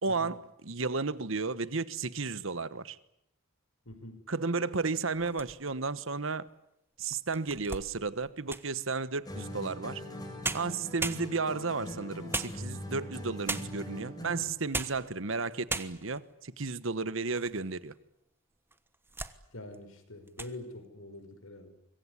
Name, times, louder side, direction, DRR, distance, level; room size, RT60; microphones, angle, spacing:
voice 1, 0.0-3.0 4.3-6.4 7.0-10.0 10.5-17.9, right 4 dB, 70° right, 1.3 m, -33 dB
voice 2, 3.9-4.2 19.5-21.7, left 1 dB, 80° left, 5.5 m, -45 dB
sound 1, 5.1-5.9 6.5-6.6 7.1-8.8 10.1-10.2 10.4-11.7 12.3-13.0 13.5-13.9 14.5-15.1 15.4-15.5 15.7-16.3 16.8-17.6 17.9-18.0 18.7-19.4 19.7-20.0 20.3-20.6, right 3 dB, 10° right, 1.2 m, -37 dB
sound 2, 9.3-14.6, equal, 20° left, 6.8 m, -41 dB
25.5 x 22.5 x 9.9 m
head